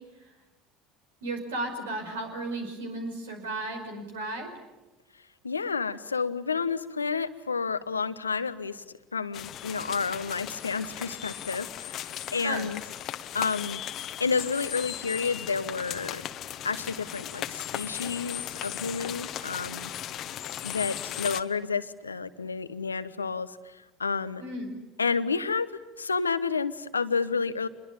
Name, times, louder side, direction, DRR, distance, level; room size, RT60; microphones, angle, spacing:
voice 1, 1.2-4.5 12.4-12.7 24.4-24.8, right 2 dB, 75° right, 4 dB, 5.4 m, -34 dB
voice 2, 5.4-8.8 9.1-12.0 12.3-12.8 13.3-13.8 14.2-16.2 16.6-19.9 20.6-23.6 24.0-24.4 25.0-25.7 26.0-27.7, left 5 dB, 85° left, 14 dB, 0.9 m, -30 dB
sound 1, 9.3-21.4, left 11 dB, 45° left, 1.2 m, -37 dB
26.0 x 22.0 x 9.0 m, 1.1 s
figure-of-eight pair, 70°, 0 cm